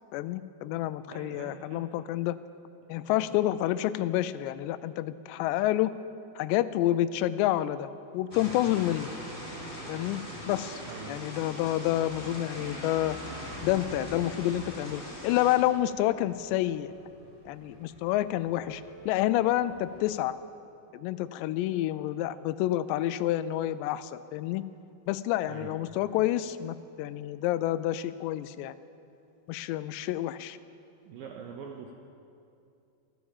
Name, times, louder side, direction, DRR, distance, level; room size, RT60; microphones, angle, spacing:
voice 1, 0.1-2.4 2.9-5.9 6.4-9.1 9.9-10.2 10.5-10.8 11.1-13.2 13.6-16.9 17.5-20.4 20.9-24.6 25.1-28.8 29.5-30.6, left 14 dB, 85° left, 15 dB, 2.7 m, -29 dB
voice 2, 1.1-1.9 3.1-3.6 10.9-11.2 25.5-25.8 29.5-29.6 31.1-31.9, right 6 dB, 75° right, 2 dB, 2.1 m, -44 dB
sound 1, 8.3-15.6, equal, 5° left, 4.1 m, -41 dB
sound 2, 9.8-20.2, right 1 dB, 25° left, 4.2 m, -52 dB
15.0 x 12.5 x 7.2 m, 2.6 s
omnidirectional pair, 5.0 m